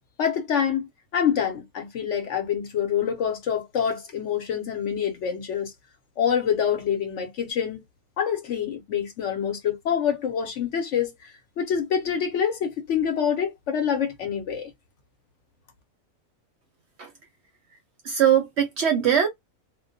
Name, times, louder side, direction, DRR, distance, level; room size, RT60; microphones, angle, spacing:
voice 1, 0.2-5.7 6.2-7.8 8.2-14.7, left 8 dB, 65° left, 0.8 m, -26 dB
voice 2, 18.0-19.3, right 9 dB, 60° right, 0.7 m, -21 dB
2.3 x 2.1 x 2.6 m
omnidirectional pair, 1.5 m